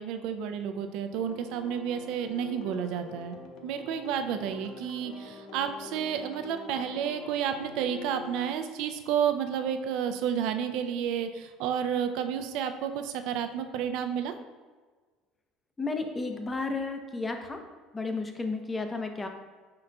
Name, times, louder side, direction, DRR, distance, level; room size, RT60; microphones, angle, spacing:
voice 1, 0.0-3.4 3.6-14.3, right 8 dB, 70° right, 8 dB, 0.3 m, -31 dB
sound 1, 1.1-8.5, left 4 dB, 70° left, 0.5 m, -45 dB
voice 2, 15.8-17.6 17.9-19.3, left 3 dB, 20° left, 5 dB, 0.5 m, -32 dB
5.2 x 3.8 x 2.2 m, 1.4 s
supercardioid pair, 100°, 0 cm